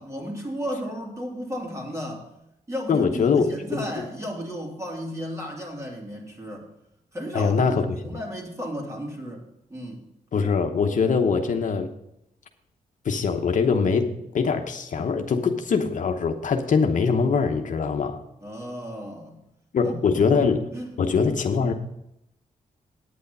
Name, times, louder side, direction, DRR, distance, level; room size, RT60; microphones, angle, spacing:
voice 1, 0.0-2.3 2.7-6.7 7.1-9.4 9.7-10.0 18.4-19.4 19.8-20.2 20.7-20.9 21.5-21.7, equal, 20° right, -1 dB, 3.0 m, -34 dB
voice 2, 2.9-3.9 7.3-7.9 10.3-11.9 13.0-18.2 19.7-20.7 21.0-21.7, left 5 dB, 60° left, 5 dB, 0.9 m, -23 dB
9.3 x 8.4 x 5.4 m, 0.81 s
cardioid pair, 80°, 15 cm